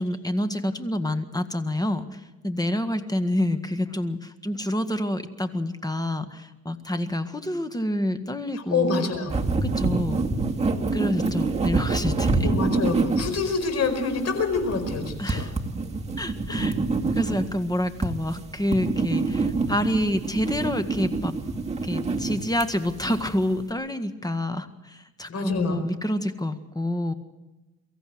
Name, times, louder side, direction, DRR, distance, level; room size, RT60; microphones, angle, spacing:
voice 1, 0.0-9.1 9.6-10.2 10.9-12.5 15.2-15.5 16.2-16.8 17.1-21.3 21.8-27.1, left 1 dB, 15° left, 9 dB, 1.7 m, -28 dB
voice 2, 8.5-9.3 10.1-10.2 10.9-11.1 12.4-15.5 16.5-16.7 25.3-25.8, left 4 dB, 55° left, 7 dB, 4.9 m, -27 dB
sound 1, 9.3-23.6, right 3 dB, 20° right, 2.1 m, -27 dB
24.0 x 14.5 x 7.9 m, 1.1 s
cardioid pair, 90°, 30 cm